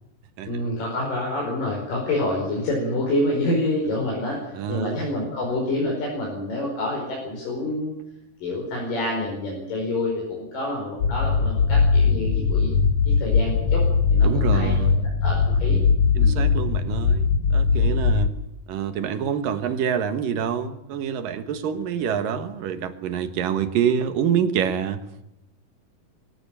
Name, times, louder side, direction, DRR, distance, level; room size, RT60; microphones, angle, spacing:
voice 1, 0.5-7.9 8.4-12.7 13.1-13.8 14.1-14.8 15.2-15.8 16.2-16.4, left 1 dB, 80° left, -2 dB, 6.8 m, -27 dB
voice 2, 4.5-5.0 14.2-15.1 16.1-18.3 18.7-25.0, right 8 dB, 85° right, 9 dB, 3.2 m, -26 dB
sound 1, 11.0-18.3, left 5 dB, 60° left, 1.7 m, -20 dB
23.0 x 16.0 x 9.0 m, 0.83 s
omnidirectional pair, 3.8 m